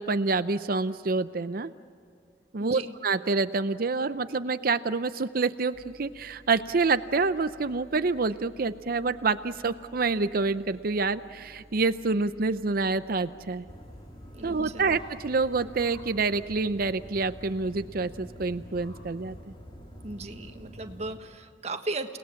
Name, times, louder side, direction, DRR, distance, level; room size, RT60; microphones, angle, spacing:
voice 1, 0.0-1.7 2.5-13.6 14.4-19.4, right 4 dB, 55° right, 12 dB, 0.6 m, -27 dB
voice 2, 2.6-3.0 14.3-15.0 20.0-22.2, right 2 dB, 35° right, 6 dB, 1.4 m, -37 dB
sound 1, 5.7-19.4, equal, 5° right, 6.9 m, -54 dB
sound 2, 13.7-21.2, equal, 30° left, 2.9 m, -47 dB
29.5 x 19.0 x 7.2 m, 2.3 s
head